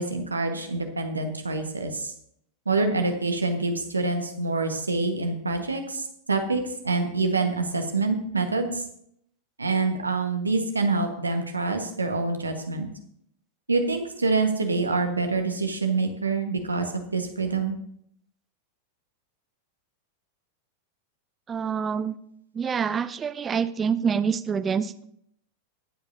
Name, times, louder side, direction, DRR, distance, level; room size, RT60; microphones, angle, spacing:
voice 1, 0.0-2.1 2.6-8.8 9.6-12.9 13.7-17.8, right 3 dB, 80° right, 5 dB, 1.4 m, -26 dB
voice 2, 21.5-22.2 22.5-25.0, right 6 dB, 20° right, 13 dB, 0.5 m, -26 dB
21.5 x 7.9 x 2.8 m, 0.72 s
figure-of-eight pair, 90°, 0 cm